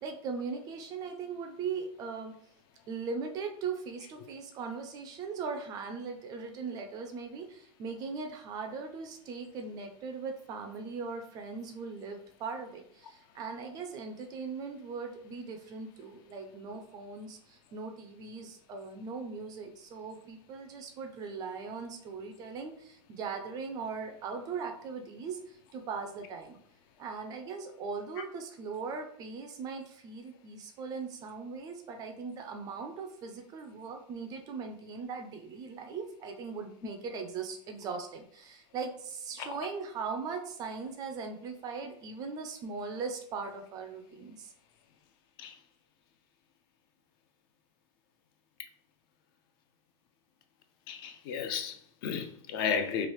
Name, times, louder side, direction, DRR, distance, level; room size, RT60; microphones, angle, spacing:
voice 1, 0.0-2.3 2.9-26.6 27.0-44.5, right 5 dB, 25° right, 0.3 m, -39 dB
voice 2, 50.9-53.1, left 6 dB, 45° left, 0.4 m, -33 dB
3.1 x 2.4 x 3.1 m
supercardioid pair, 150°, 16 cm